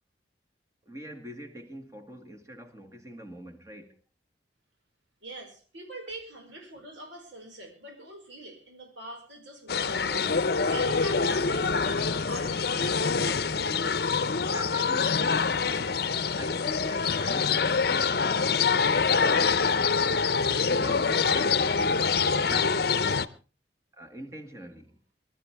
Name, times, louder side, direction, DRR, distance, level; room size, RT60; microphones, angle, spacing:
voice 1, 0.9-4.0 14.5-15.7 16.3-18.2 18.8-19.9 20.6-22.1 22.5-23.1 23.9-25.0, equal, 15° right, 1.9 m, -44 dB
voice 2, 5.2-13.2, right 1 dB, 90° right, 5.3 m, -43 dB
sound 1, 9.7-23.3, left 5 dB, 55° left, 0.7 m, -25 dB
24.5 x 13.0 x 3.5 m
head